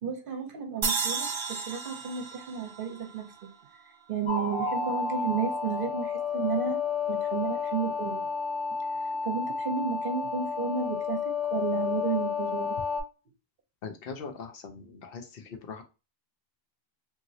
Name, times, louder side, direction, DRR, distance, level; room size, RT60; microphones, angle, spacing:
voice 1, 0.0-3.5 4.1-6.8 7.1-8.3 9.2-11.2 11.5-12.7, right 7 dB, 60° right, 0.8 m, -32 dB
sound 1, 0.8-4.1, right 5 dB, 45° right, 0.4 m, -34 dB
sound 2, 4.3-13.0, left 5 dB, 35° left, 1.0 m, -31 dB
voice 2, 13.8-15.8, left 5 dB, 70° left, 0.8 m, -41 dB
2.9 x 2.7 x 2.6 m
omnidirectional pair, 1.0 m